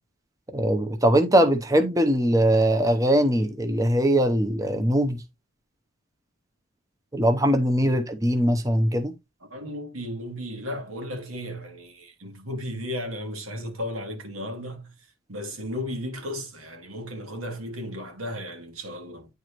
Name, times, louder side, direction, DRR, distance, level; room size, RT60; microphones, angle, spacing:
voice 1, 0.5-5.2 7.1-9.1, right 1 dB, 15° right, 0.7 m, -21 dB
voice 2, 7.7-8.0 9.4-14.9 15.3-19.3, left 1 dB, 90° right, 2.5 m, -35 dB
9.4 x 4.7 x 3.0 m
head